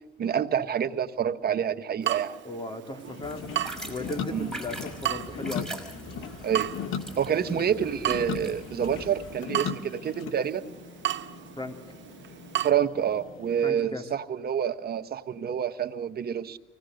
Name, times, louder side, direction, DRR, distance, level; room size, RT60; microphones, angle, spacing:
voice 1, 0.2-2.4 4.3-4.5 6.4-6.7 7.2-10.6 12.6-16.6, right 8 dB, 50° right, 9 dB, 1.3 m, -28 dB
Water tap faucet / Drip, 2.0-12.7, right 13 dB, 65° right, 0.9 m, -36 dB
voice 2, 2.4-3.4 3.8-5.7 11.6-11.8 13.6-14.1, left 2 dB, 25° left, 5 dB, 3.3 m, -36 dB
sound 1, 3.1-13.7, left 7 dB, 85° left, 1.2 m, -39 dB
sound 2, 3.2-9.4, right 1 dB, 5° left, 5.7 m, -43 dB
25.0 x 18.0 x 6.5 m, 1.1 s
cardioid pair, 90°, 20 cm